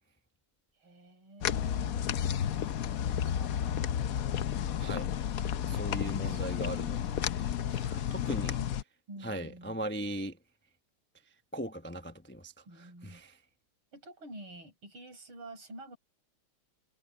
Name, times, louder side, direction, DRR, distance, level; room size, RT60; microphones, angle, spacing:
voice 1, 0.8-4.1 6.2-6.4 7.0-7.5 8.6-8.7 9.1-9.9 12.6-13.2 13.9-16.0, right 1 dB, 75° right, 8.6 m, -50 dB
sound 1, 1.4-8.8, left 9 dB, 65° left, 0.8 m, -32 dB
voice 2, 4.8-5.3 5.7-7.0 7.4-8.6 9.2-10.4 11.5-12.5 13.0-13.3, right 1 dB, 15° left, 0.3 m, -38 dB
omnidirectional pair, 2.3 m